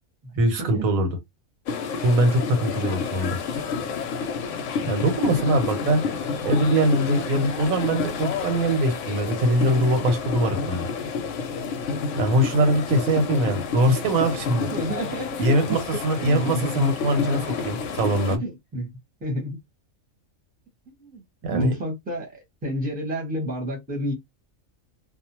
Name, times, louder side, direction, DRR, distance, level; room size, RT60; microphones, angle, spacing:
voice 1, 0.4-1.1 2.0-3.4 4.8-6.0 6.4-10.9 12.2-14.7 15.4-18.4 21.4-21.8, right 1 dB, 85° right, 1.2 m, -22 dB
sound 1, 1.7-18.4, left 5 dB, 70° left, 0.9 m, -29 dB
voice 2, 14.7-15.8 16.1-16.9 18.3-18.9 19.2-19.6 21.0-24.1, equal, 10° right, 0.8 m, -30 dB
2.5 x 2.0 x 2.8 m
omnidirectional pair, 1.4 m